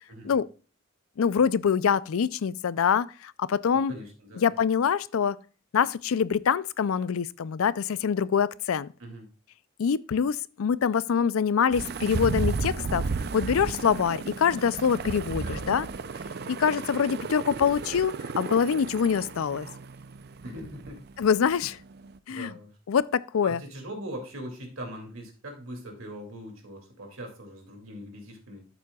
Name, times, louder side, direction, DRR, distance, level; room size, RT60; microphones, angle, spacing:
voice 1, 0.1-0.4 3.7-4.5 9.0-9.3 15.4-15.8 17.2-17.4 20.4-21.0 22.3-22.7 23.4-28.7, equal, 75° right, 2.4 m, -41 dB
voice 2, 1.2-3.9 4.4-5.4 5.7-8.9 9.8-13.1 13.3-15.9 16.5-19.7 21.2-21.8 22.3-22.5 22.9-23.6, left 7 dB, 80° left, 0.4 m, -25 dB
sound 1, 11.7-22.2, right 4 dB, 50° right, 0.4 m, -34 dB
12.5 x 7.5 x 2.3 m
head